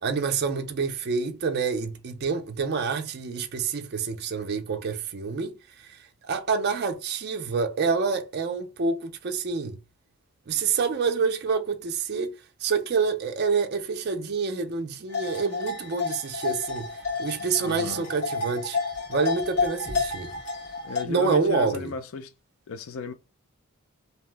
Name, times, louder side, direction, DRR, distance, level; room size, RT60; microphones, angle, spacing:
voice 1, 0.0-6.0 6.2-9.8 10.5-12.3 12.6-16.9 17.2-18.8 19.1-20.3 21.0-21.9, right 5 dB, 45° right, 0.4 m, -27 dB
sound 1, 15.1-21.0, left 4 dB, 85° left, 1.4 m, -30 dB
voice 2, 17.6-18.0 20.8-22.3 22.7-23.1, left 4 dB, 65° left, 0.4 m, -34 dB
2.8 x 2.0 x 3.2 m
head